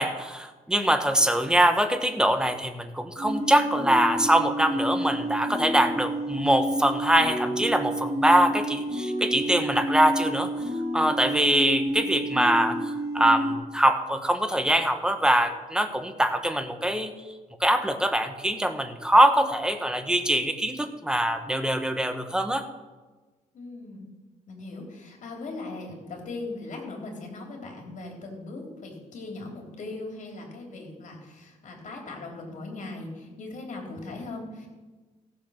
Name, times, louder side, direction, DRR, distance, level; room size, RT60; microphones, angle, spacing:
voice 1, 0.0-10.5 10.9-17.1 17.6-22.7, right 1 dB, 5° right, 8 dB, 1.1 m, -23 dB
sound 1, 3.2-13.5, equal, 50° right, 4.6 m, -29 dB
voice 2, 23.5-24.1 24.5-34.7, left 2 dB, 65° left, 1 dB, 3.4 m, -39 dB
15.5 x 7.4 x 6.4 m, 1.3 s
cardioid pair, 120°, 14 cm